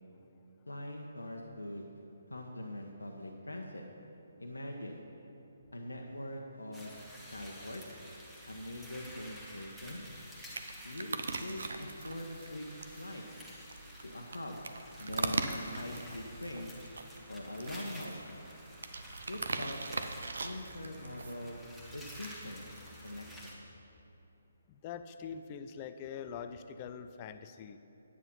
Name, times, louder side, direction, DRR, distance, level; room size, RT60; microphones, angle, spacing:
voice 1, 0.7-1.9 2.3-3.8 4.4-5.0 5.7-7.0 7.3-7.8 8.5-10.0 10.8-12.7 13.0-13.2 14.0-14.6 15.0-16.7 17.3-18.2 19.3-19.8 20.4-21.6 21.9-22.6 23.0-23.6, left 1 dB, 75° left, 1 dB, 1.0 m, -43 dB
sound 1, 6.7-23.5, equal, ahead, 1.3 m, -51 dB
sound 2, 9.4-23.2, right 3 dB, 60° right, 0.7 m, -41 dB
voice 2, 24.7-27.8, left 7 dB, 25° left, 10 dB, 0.5 m, -44 dB
9.7 x 8.8 x 5.4 m, 2.9 s
figure-of-eight pair, 140°, 0 cm